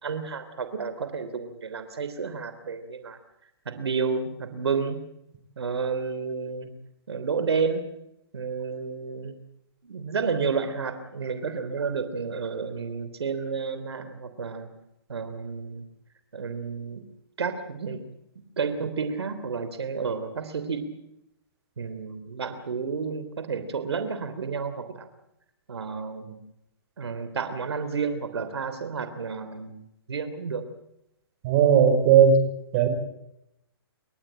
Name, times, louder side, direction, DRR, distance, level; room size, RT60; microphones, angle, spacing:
voice 1, 0.0-3.2 3.6-5.1 5.6-6.7 7.1-7.9 8.3-9.4 9.8-14.7 15.1-15.8 16.3-17.0 17.4-18.0 18.6-20.9 21.8-25.1 25.7-26.4 27.0-29.8 30.1-30.6, right 5 dB, 80° right, 10 dB, 3.3 m, -31 dB
voice 2, 31.4-32.4 32.7-32.9, right 7 dB, 35° right, 8 dB, 4.8 m, -17 dB
29.0 x 13.0 x 8.9 m, 0.84 s
hypercardioid pair, 150°, 13 cm